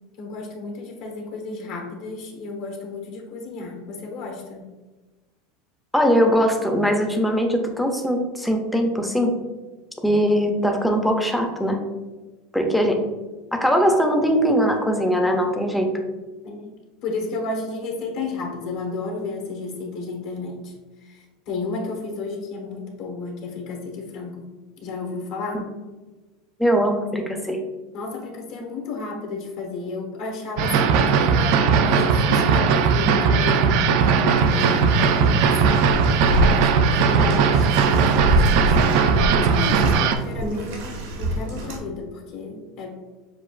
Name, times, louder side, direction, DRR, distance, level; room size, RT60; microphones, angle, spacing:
voice 1, 0.2-4.6 16.4-24.5 24.8-25.7 27.9-35.9 36.5-42.9, left 3 dB, 60° left, 2 dB, 1.1 m, -33 dB
voice 2, 5.9-9.3 10.0-11.8 12.5-13.0 13.5-16.0 26.6-27.6 40.4-40.7, equal, 5° left, 3 dB, 0.5 m, -21 dB
sound 1, 30.6-40.2, right 5 dB, 60° right, 0.4 m, -18 dB
Bathtub (filling or washing), 34.4-41.8, equal, 80° right, 0.9 m, -27 dB
7.0 x 2.4 x 2.4 m, 1.2 s
supercardioid pair, 140°, 0 cm